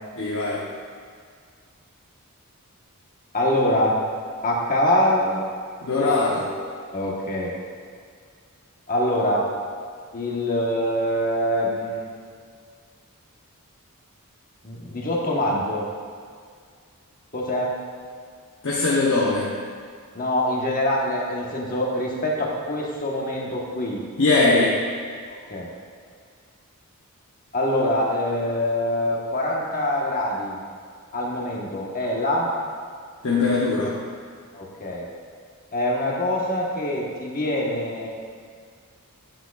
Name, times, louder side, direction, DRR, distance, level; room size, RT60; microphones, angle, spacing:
voice 1, 0.2-0.6 5.8-6.5 18.6-19.5 24.2-24.8 33.2-33.9, left 3 dB, 60° left, -5 dB, 0.8 m, -21 dB
voice 2, 3.3-4.0 4.4-5.4 6.9-7.5 8.9-9.5 10.1-12.0 14.6-15.8 17.3-17.7 20.1-24.0 25.5-25.7 27.5-30.6 31.1-32.5 34.5-35.1 35.7-38.1, left 1 dB, 40° left, -2 dB, 1.2 m, -24 dB
8.8 x 8.1 x 2.4 m, 2.1 s
head